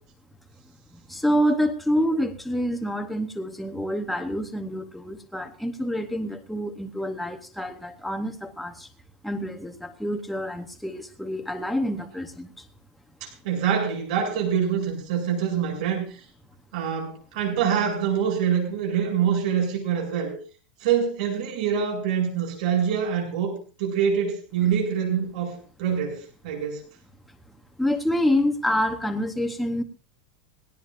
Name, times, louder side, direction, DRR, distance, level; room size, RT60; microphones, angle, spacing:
voice 1, 1.1-8.9 9.2-12.7 27.8-29.8, equal, ahead, 4 dB, 0.9 m, -27 dB
voice 2, 13.2-16.2 16.7-20.3 20.8-26.8, right 8 dB, 65° right, 0 dB, 7.6 m, -25 dB
19.5 x 18.0 x 2.5 m, 0.38 s
supercardioid pair, 165°, 4 cm